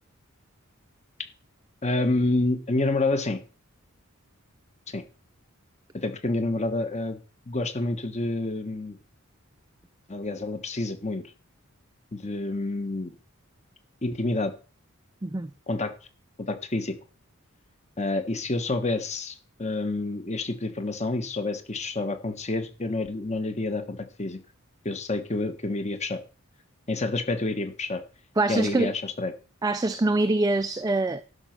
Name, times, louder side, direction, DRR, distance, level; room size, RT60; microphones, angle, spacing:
voice 1, 1.8-3.4 4.9-5.0 5.9-7.2 7.5-9.0 10.1-11.2 12.1-13.1 14.0-14.5 15.7-15.9 16.5-16.9 18.0-24.4 24.8-26.2 26.9-28.0 28.5-29.3, left 2 dB, 30° left, 1.2 m, -28 dB
voice 2, 15.2-15.5 28.4-28.9 29.6-31.2, right 2 dB, 15° right, 0.4 m, -24 dB
11.5 x 5.2 x 5.9 m
head